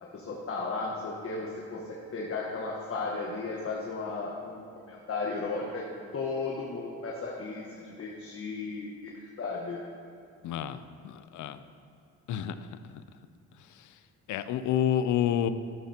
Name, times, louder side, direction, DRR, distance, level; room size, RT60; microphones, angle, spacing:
voice 1, 0.0-5.8 6.1-9.8, left 3 dB, 50° left, -2 dB, 1.3 m, -35 dB
voice 2, 10.4-11.6 12.3-12.6 12.8-13.0 13.7-13.9 14.3-15.5, left 10 dB, 75° left, 12 dB, 0.6 m, -29 dB
12.0 x 12.0 x 2.9 m, 2.4 s
cardioid pair, 90°, 30 cm